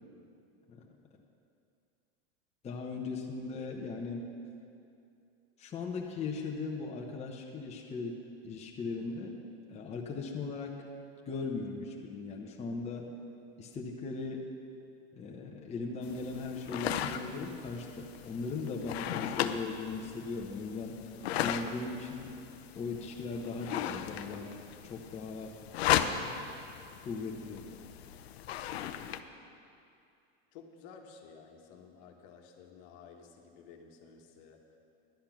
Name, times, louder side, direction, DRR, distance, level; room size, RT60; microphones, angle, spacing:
voice 1, 2.6-4.3 5.6-9.4 9.7-10.8 11.3-13.1 13.6-14.5 15.2-21.0 21.4-22.3 22.7-24.6 24.9-25.5 25.9-26.5 27.0-27.7, left 4 dB, 20° left, 0 dB, 1.0 m, -38 dB
sound 1, 16.0-29.2, left 10 dB, 85° left, 0.7 m, -37 dB
voice 2, 28.9-29.3 30.5-34.8, left 6 dB, 55° left, 2 dB, 1.4 m, -54 dB
11.5 x 8.6 x 6.0 m, 2.5 s
supercardioid pair, 125°, 31 cm